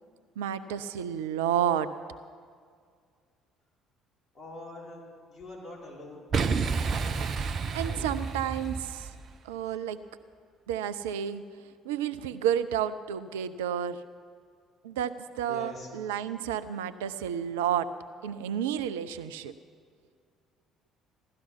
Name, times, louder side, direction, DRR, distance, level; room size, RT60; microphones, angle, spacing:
voice 1, 0.4-1.9 7.7-9.1 9.4-10.0 10.7-11.4 11.8-14.0 14.8-17.9 18.2-19.5, right 9 dB, 70° right, 11 dB, 0.4 m, -31 dB
voice 2, 4.3-5.0 5.3-6.2 7.8-8.1 15.5-15.9, left 2 dB, 25° left, -3 dB, 4.3 m, -43 dB
Boom, 6.3-9.3, right 5 dB, 45° right, 0.8 m, -30 dB
16.5 x 12.5 x 5.9 m, 2.1 s
figure-of-eight pair, 50°, 0 cm